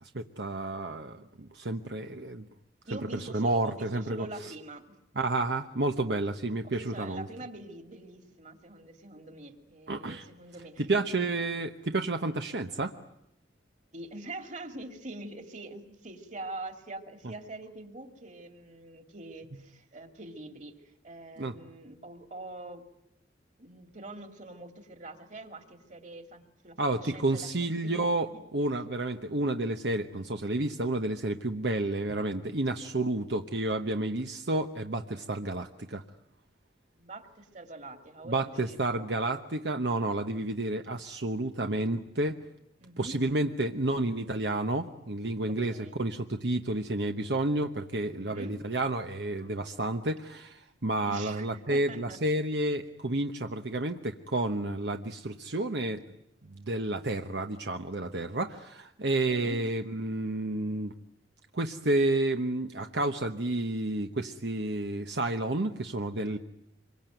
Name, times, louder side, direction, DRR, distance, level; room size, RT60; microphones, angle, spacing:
voice 1, 0.0-2.5 2.9-4.5 5.2-7.3 9.9-10.3 10.9-12.9 17.2-17.3 21.4-21.6 26.8-36.0 38.3-42.4 43.0-56.0 56.5-60.9 61.5-66.4, right 2 dB, 70° right, 6 dB, 1.1 m, -30 dB
voice 2, 2.8-5.0 6.1-6.4 6.6-11.0 13.9-22.8 23.6-28.4 37.0-39.1 42.8-43.2 45.5-46.0 48.2-48.6 51.1-52.2 59.3-59.6, right 2 dB, 40° right, 7 dB, 2.7 m, -44 dB
26.0 x 23.5 x 9.2 m, 0.80 s
head